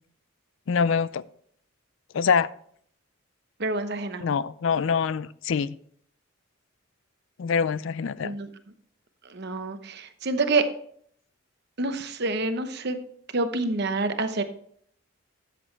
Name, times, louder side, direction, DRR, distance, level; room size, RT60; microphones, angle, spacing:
voice 1, 0.7-1.2 2.1-2.5 4.2-5.8 7.4-8.4, left 6 dB, 65° left, 0.4 m, -25 dB
voice 2, 3.6-4.2 8.2-8.5 9.3-10.6 11.8-13.0 13.3-14.4, right 3 dB, 50° right, 0.9 m, -27 dB
12.0 x 7.7 x 3.3 m
head